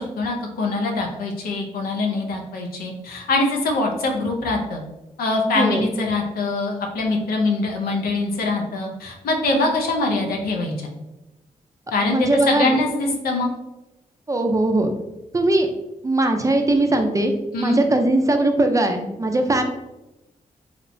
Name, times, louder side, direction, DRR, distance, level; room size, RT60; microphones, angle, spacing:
voice 1, 0.0-4.8 5.2-10.9 11.9-13.5 17.5-17.8, left 2 dB, 85° left, 1 dB, 0.5 m, -23 dB
voice 2, 5.5-5.9 12.1-12.8 14.3-14.9 15.3-15.7 16.0-17.3 17.6-19.6, right 2 dB, 20° right, 5 dB, 0.4 m, -20 dB
2.8 x 2.0 x 2.5 m, 0.97 s
supercardioid pair, 50°, 15 cm